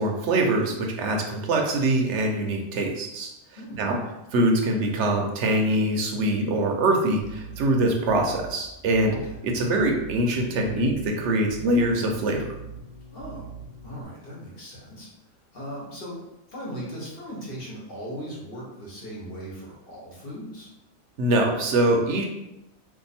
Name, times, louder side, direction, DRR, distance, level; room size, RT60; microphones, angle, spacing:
voice 1, 0.0-3.3 3.8-4.0 4.3-9.1 9.4-12.5 21.2-22.2, right 1 dB, 65° right, 2 dB, 0.8 m, -23 dB
sound 1, 7.2-14.0, right 6 dB, 90° right, 0.3 m, -43 dB
voice 2, 9.1-9.6 13.1-13.5 13.8-15.1 15.5-16.2 16.5-20.7, equal, 50° left, -5 dB, 1.1 m, -38 dB
2.7 x 2.4 x 4.0 m, 0.90 s
omnidirectional pair, 1.4 m